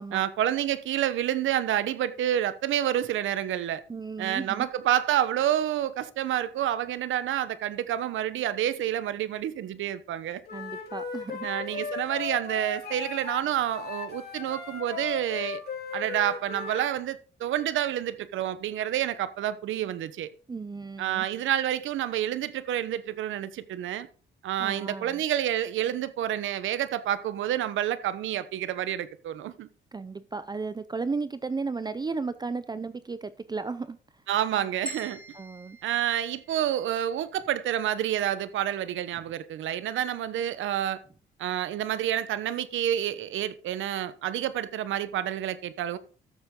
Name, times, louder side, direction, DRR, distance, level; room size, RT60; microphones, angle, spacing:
voice 1, 0.1-3.8 4.2-10.4 11.4-15.6 15.9-20.3 21.0-24.1 24.4-29.7 34.3-35.2 35.8-41.0 41.4-46.0, right 11 dB, 80° right, 1.0 m, -28 dB
voice 2, 3.9-4.7 10.5-11.9 20.5-21.3 24.6-25.2 29.9-34.0 35.3-35.8, right 4 dB, 20° right, 0.6 m, -34 dB
Wind instrument woodwind instrument, 10.5-13.4 13.7-16.9, left 5 dB, 50° left, 3.6 m, -37 dB
sound 1, 34.9-37.0, equal, 5° left, 4.1 m, -43 dB
13.0 x 7.1 x 3.8 m
cardioid pair, 90°, 20 cm